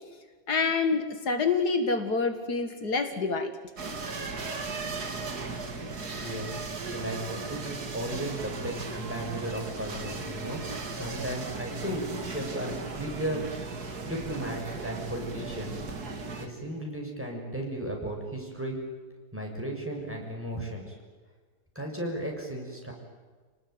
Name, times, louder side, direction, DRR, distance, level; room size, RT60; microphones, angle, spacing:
voice 1, 0.5-3.5, left 4 dB, 75° left, 7 dB, 2.4 m, -27 dB
sound 1, 3.8-16.5, right 3 dB, 70° right, 2.9 m, -37 dB
voice 2, 6.2-6.6 6.9-10.6 10.9-13.4 14.0-15.7 16.4-18.8 19.3-21.0 21.7-22.9, right 1 dB, 5° right, 0 dB, 6.8 m, -35 dB
29.5 x 19.0 x 9.6 m, 1.4 s
omnidirectional pair, 1.7 m